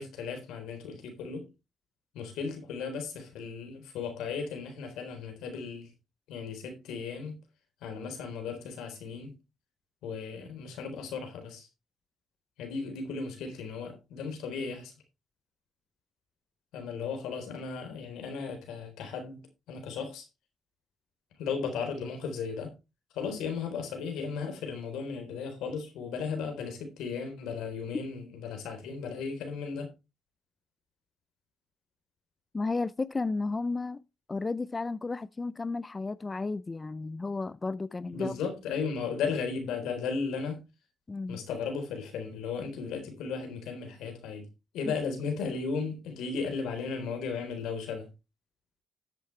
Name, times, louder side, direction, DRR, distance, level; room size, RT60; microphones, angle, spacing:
voice 1, 0.0-1.5 2.1-5.9 6.3-7.4 7.8-9.4 10.0-11.7 12.6-14.9 16.7-20.3 21.4-22.7 23.1-29.9 38.1-40.7 41.3-44.5 44.7-48.1, left 5 dB, 90° left, 4.0 m, -35 dB
voice 2, 32.5-34.0 34.3-38.3 41.1-41.4 44.9-45.0, left 3 dB, 25° left, 0.5 m, -33 dB
13.5 x 8.3 x 3.2 m
cardioid pair, 90°, 0 cm